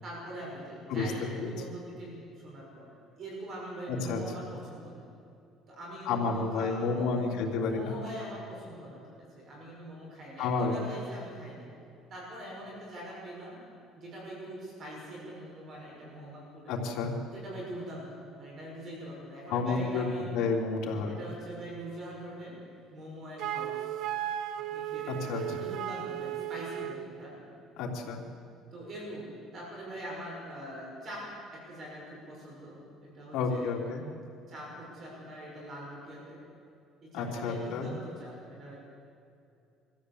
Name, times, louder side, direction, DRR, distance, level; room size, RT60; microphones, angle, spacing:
voice 1, 0.0-2.9 3.1-5.0 5.7-7.2 7.7-9.0 9.4-11.7 12.1-13.6 14.0-16.7 17.3-18.1 18.4-20.3 21.1-22.6 22.9-23.8 24.7-27.3 28.7-31.2 31.5-33.7 34.5-36.4 37.0-38.8, right 1 dB, 35° right, -3 dB, 5.9 m, -43 dB
voice 2, 3.9-4.2 6.0-8.0 10.4-10.8 16.7-17.1 19.5-20.0 20.3-21.2 25.1-25.7 27.8-28.2 33.3-34.0 37.1-37.9, left 4 dB, 70° left, -1 dB, 3.4 m, -30 dB
Wind instrument woodwind instrument, 23.4-27.1, right 11 dB, 60° right, 0.8 m, -35 dB
23.5 x 14.5 x 8.2 m, 2.5 s
cardioid pair, 165°, 0 cm